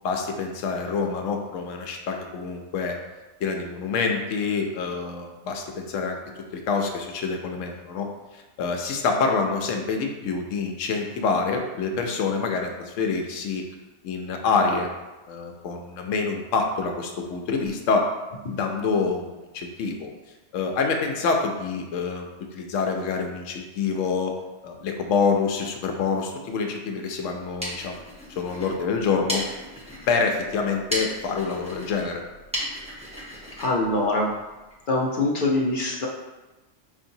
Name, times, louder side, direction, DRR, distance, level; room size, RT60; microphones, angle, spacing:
voice 1, 0.0-3.0 3.4-6.2 6.5-8.1 8.3-13.6 14.0-14.9 15.3-18.1 18.5-20.1 20.5-24.3 24.6-28.0 28.4-29.5 30.1-32.2, left 4 dB, 80° left, 2 dB, 0.9 m, -26 dB
sound 1, 27.3-34.8, equal, 5° right, 0.8 m, -36 dB
voice 2, 33.6-34.3 34.9-36.1, left 2 dB, 55° left, -2 dB, 0.6 m, -23 dB
5.0 x 2.8 x 2.6 m, 1.1 s
omnidirectional pair, 1.3 m